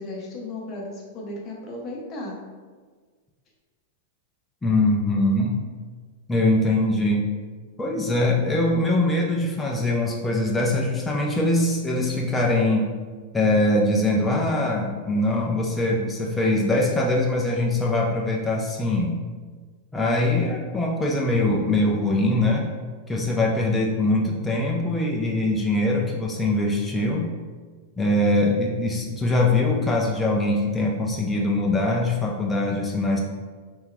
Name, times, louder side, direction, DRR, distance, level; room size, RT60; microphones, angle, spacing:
voice 1, 0.0-2.4, left 2 dB, 20° left, -3 dB, 0.8 m, -35 dB
voice 2, 4.6-5.6 6.3-7.3 7.8-12.9 13.3-19.2 19.9-22.7 23.1-27.3 28.0-33.2, left 2 dB, 5° left, -2 dB, 0.3 m, -22 dB
3.3 x 3.0 x 3.7 m, 1.5 s
supercardioid pair, 170°, 0 cm